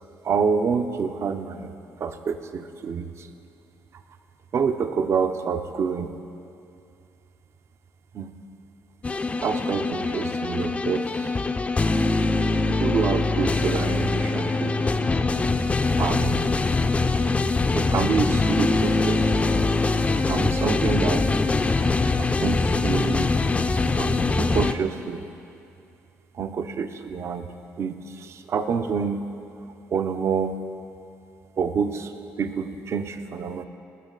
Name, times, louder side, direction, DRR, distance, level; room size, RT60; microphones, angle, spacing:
voice 1, 0.2-1.7 2.0-3.3 4.5-6.1 8.1-8.3 9.4-11.4 12.7-15.0 16.0-16.5 17.7-19.4 20.3-21.3 22.2-23.3 24.0-25.2 26.3-27.5 27.8-29.2 29.9-30.5 31.6-32.1 32.4-33.6, right 6 dB, 50° right, 9 dB, 0.6 m, -27 dB
sound 1, 9.0-24.7, left 3 dB, 25° left, 0.5 m, -23 dB
18.0 x 6.4 x 3.9 m, 2.6 s
supercardioid pair, 80°, 6 cm